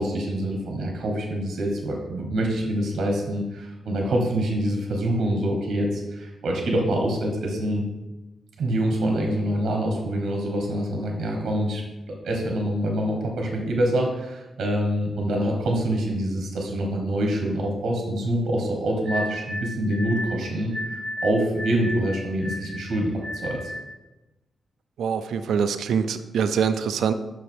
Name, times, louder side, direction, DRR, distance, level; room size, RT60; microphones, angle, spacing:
voice 1, 0.0-7.8 8.6-23.1 23.4-23.7, right 1 dB, 70° right, 1 dB, 1.3 m, -25 dB
sound 1, 19.0-23.9, left 1 dB, 45° right, 2.0 m, -33 dB
voice 2, 25.0-27.1, right 7 dB, 85° right, 10 dB, 0.4 m, -24 dB
6.2 x 5.0 x 4.6 m, 1.1 s
cardioid pair, 115°, 0 cm